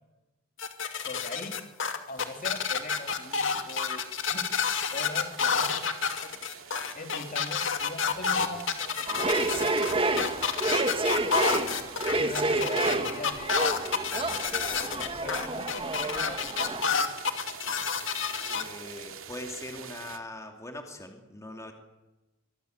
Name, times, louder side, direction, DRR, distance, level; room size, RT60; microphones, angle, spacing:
sound 1, 0.6-18.6, left 6 dB, 65° left, 2.5 m, -29 dB
voice 1, 1.0-1.6 2.1-4.4 4.9-5.9 6.9-9.7 10.2-10.3 12.1-13.7 14.9-16.7, left 2 dB, 40° left, 5 dB, 3.2 m, -41 dB
sound 2, 2.2-20.2, right 7 dB, 75° right, 2.6 m, -47 dB
sound 3, 9.1-16.8, right 2 dB, 25° right, 2.1 m, -29 dB
voice 2, 18.5-21.7, left 1 dB, 15° left, 3 dB, 2.7 m, -41 dB
25.0 x 23.5 x 8.1 m, 1.1 s
head